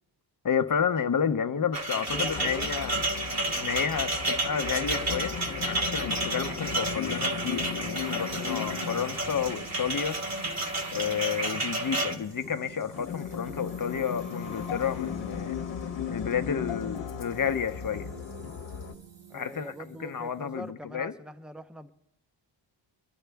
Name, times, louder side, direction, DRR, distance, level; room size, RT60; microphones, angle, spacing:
voice 1, 0.4-3.0 3.6-5.3 5.6-10.2 10.9-15.6 16.1-18.1 19.3-21.1, left 7 dB, 45° left, 0.8 m, -31 dB
voice 2, 1.5-2.7 19.3-21.9, equal, ahead, 0.7 m, -43 dB
sound 1, 1.7-12.2, right 2 dB, 35° right, 1.4 m, -31 dB
sound 2, 2.1-18.9, left 7 dB, 70° left, 1.1 m, -37 dB
sound 3, 6.0-20.7, right 6 dB, 65° right, 1.3 m, -48 dB
23.5 x 11.0 x 3.4 m
wide cardioid pair, 95°, 46 cm